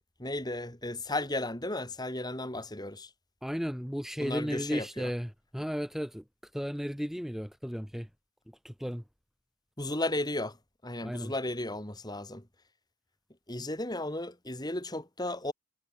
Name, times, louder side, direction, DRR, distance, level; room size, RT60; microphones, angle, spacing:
voice 1, 0.2-3.1 4.2-5.1 9.8-10.6 10.8-12.4 13.5-15.5, left 1 dB, 20° left, 3.2 m, -34 dB
voice 2, 3.4-6.2 6.5-8.1 8.6-9.0 11.0-11.3, equal, ahead, 4.4 m, -34 dB
head